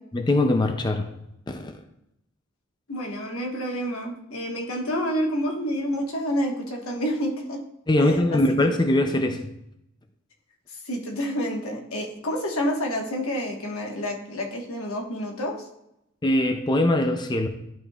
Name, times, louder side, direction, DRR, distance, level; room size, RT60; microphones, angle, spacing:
voice 1, 0.1-1.2 1.5-1.7 7.9-9.6 16.2-17.5, left 1 dB, 20° left, 6 dB, 0.4 m, -22 dB
voice 2, 2.9-7.6 8.0-8.7 10.8-15.7, equal, 90° left, 1 dB, 1.3 m, -29 dB
11.0 x 5.1 x 2.3 m, 0.82 s
head